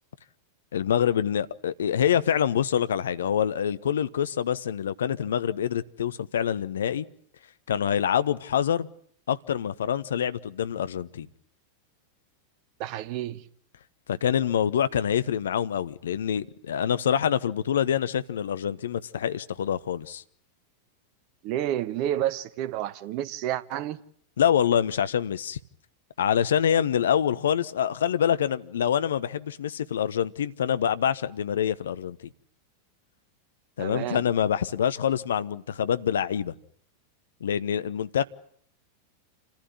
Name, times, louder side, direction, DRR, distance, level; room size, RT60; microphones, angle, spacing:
voice 1, 0.7-7.0 7.7-8.9 9.3-11.3 14.1-20.2 24.4-25.6 26.2-32.2 33.8-36.5 37.4-38.2, left 9 dB, 65° left, 1.0 m, -26 dB
voice 2, 12.8-13.4 21.4-24.0 33.8-34.2, right 12 dB, 45° right, 1.1 m, -30 dB
27.5 x 15.0 x 9.7 m
figure-of-eight pair, 90°, 0 cm